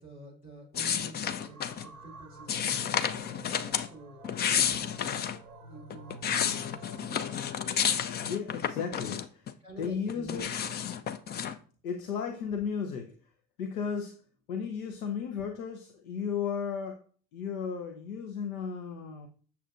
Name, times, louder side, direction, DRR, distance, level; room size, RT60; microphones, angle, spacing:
voice 1, 0.0-4.2 4.5-5.3 5.6-7.2 9.6-10.5, right 2 dB, 90° left, -5 dB, 2.5 m, -49 dB
sound 1, 0.7-1.9 2.5-3.9 4.2-5.4 5.9-9.5 9.8-11.6, left 8 dB, 25° left, 0.4 m, -31 dB
sound 2, 1.4-7.6, right 2 dB, 90° right, 0.9 m, -50 dB
voice 2, 8.2-9.5 9.8-10.5 11.8-13.2 13.6-14.2 14.5-17.0 17.3-19.3, left 6 dB, 70° left, 5 dB, 0.9 m, -34 dB
8.4 x 6.9 x 2.5 m, 0.42 s
figure-of-eight pair, 60°, 45 cm